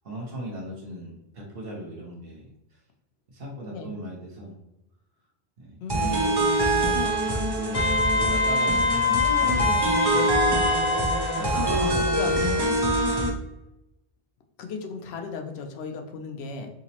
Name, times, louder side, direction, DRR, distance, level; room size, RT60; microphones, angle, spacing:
voice 1, 0.0-2.8 3.3-4.6 5.6-12.5, right 1 dB, 65° right, -3 dB, 1.1 m, -39 dB
voice 2, 5.8-6.3 11.5-12.3 14.6-16.7, left 5 dB, 85° left, 4 dB, 0.9 m, -36 dB
sound 1, 5.9-13.3, right 1 dB, 30° right, 0.5 m, -24 dB
Wind instrument woodwind instrument, 7.7-11.9, left 4 dB, 50° left, 0.4 m, -25 dB
4.9 x 2.0 x 2.8 m, 0.91 s
omnidirectional pair, 1.1 m